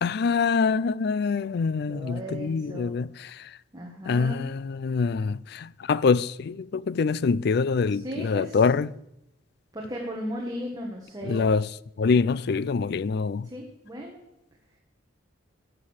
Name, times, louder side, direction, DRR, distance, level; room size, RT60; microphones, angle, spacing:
voice 1, 0.0-3.5 4.0-8.9 11.2-11.7 12.0-13.5, left 5 dB, 55° left, 0.4 m, -25 dB
voice 2, 1.9-2.9 3.7-4.4 8.0-8.6 9.7-11.5 13.4-14.2, equal, 20° right, 1.6 m, -36 dB
15.0 x 6.8 x 7.2 m
head